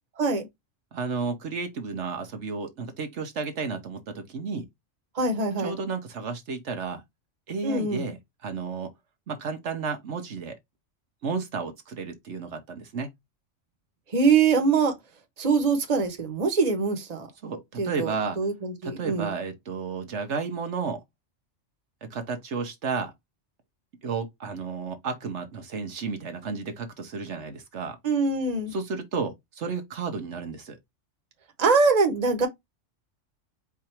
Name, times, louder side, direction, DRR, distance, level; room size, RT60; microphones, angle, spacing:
voice 1, 0.9-4.7 5.6-7.0 7.5-8.9 9.3-10.6 11.2-13.1 17.4-18.4 18.8-21.0 22.1-23.1 24.0-28.0 28.7-30.8, right 4 dB, 70° right, 1.2 m, -32 dB
voice 2, 5.1-5.7 7.6-8.1 14.1-14.9 15.4-17.3 17.8-19.3 28.0-28.7 31.6-32.5, right 4 dB, 35° right, 1.1 m, -23 dB
4.8 x 2.5 x 4.4 m
omnidirectional pair, 1.3 m